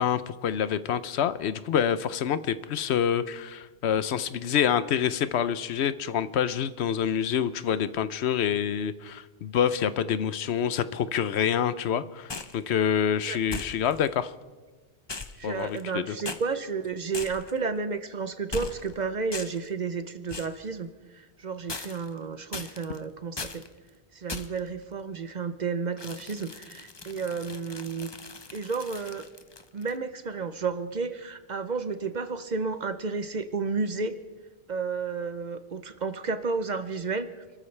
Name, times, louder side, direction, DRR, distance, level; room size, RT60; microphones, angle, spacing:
voice 1, 0.0-14.3 15.4-16.2, left 8 dB, 80° left, 14 dB, 0.9 m, -27 dB
sound 1, 12.3-12.6 13.5-14.1 15.1-15.9 16.2-16.4 17.1-17.6 18.5-18.9 19.3-19.7 20.3-20.6 21.7-22.2 22.5-23.0 23.4-23.7 24.3-24.7 26.0-30.0, left 3 dB, 30° left, 0.7 m, -39 dB
voice 2, 15.4-23.6 24.1-28.1 28.5-29.3 29.7-34.1 34.7-37.3, right 4 dB, 45° right, 11 dB, 0.8 m, -32 dB
28.5 x 14.0 x 3.3 m, 1.3 s
omnidirectional pair, 1.1 m